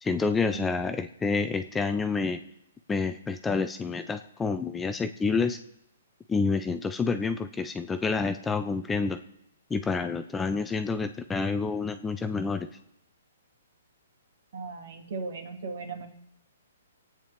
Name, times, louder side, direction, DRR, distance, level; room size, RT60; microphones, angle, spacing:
voice 1, 0.0-2.4 2.9-5.6 6.3-9.2 9.7-12.7, left 4 dB, 10° left, 9 dB, 0.6 m, -28 dB
voice 2, 14.5-16.1, right 4 dB, 65° right, 3 dB, 2.5 m, -37 dB
26.5 x 9.0 x 3.4 m, 0.78 s
hypercardioid pair, 140°, 0 cm